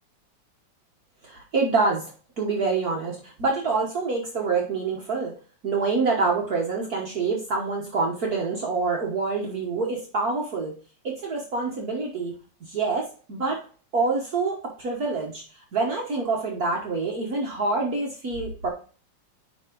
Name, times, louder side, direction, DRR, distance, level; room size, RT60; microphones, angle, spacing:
voice 1, 1.2-2.0 2.4-5.3 5.6-10.7 11.0-12.3 12.6-13.6 13.9-15.4 15.7-18.7, right 4 dB, 55° right, -1 dB, 1.7 m, -26 dB
10.0 x 3.6 x 3.8 m, 0.38 s
omnidirectional pair, 2.0 m